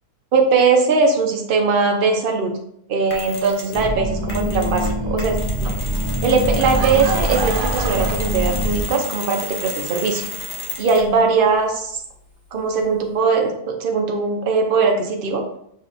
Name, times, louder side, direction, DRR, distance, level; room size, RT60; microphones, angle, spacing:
voice 1, 0.3-2.5 2.9-5.7 6.2-10.3 10.8-12.0 12.5-15.4, right 4 dB, 55° right, 2 dB, 0.6 m, -20 dB
Mechanisms, 3.1-3.9 4.3-11.2, left 2 dB, 65° left, 1.3 m, -33 dB
sound 1, 3.7-8.8, right 1 dB, 10° left, 0.5 m, -24 dB
Laughter / Crowd, 6.3-9.1, right 4 dB, 80° right, 1.2 m, -29 dB
6.0 x 3.1 x 2.5 m, 0.71 s
omnidirectional pair, 1.7 m